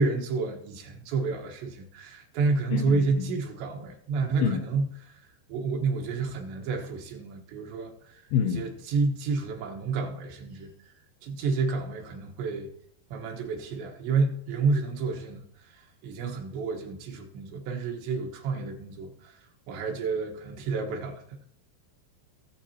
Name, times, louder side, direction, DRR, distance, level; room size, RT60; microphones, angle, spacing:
voice 1, 0.0-5.2 5.5-10.7 11.2-12.7 13.1-19.4 19.7-21.4, right 4 dB, 85° right, 2 dB, 3.7 m, -30 dB
voice 2, 2.7-3.3 4.4-4.6 8.3-8.6, left 8 dB, 80° left, 6 dB, 2.5 m, -27 dB
19.5 x 7.3 x 2.9 m, 0.69 s
omnidirectional pair, 4.9 m